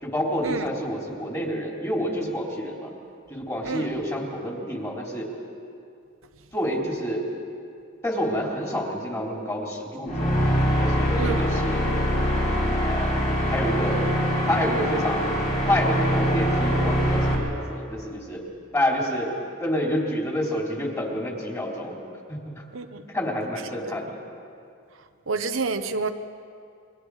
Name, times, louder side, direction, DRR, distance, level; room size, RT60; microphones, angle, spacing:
voice 1, 0.0-2.9 3.3-5.4 6.5-7.3 8.0-10.3 10.8-11.9 12.8-14.0 14.5-15.4 15.7-18.5 18.7-22.0 22.3-22.6 22.9-24.2, equal, 15° left, -1 dB, 3.8 m, -28 dB
sound 1, 10.1-17.4, equal, 40° left, 4.5 m, -23 dB
voice 2, 11.2-11.5 22.7-23.0 25.3-26.1, right 4 dB, 90° right, 7 dB, 1.1 m, -28 dB
29.0 x 23.5 x 5.0 m, 2.4 s
head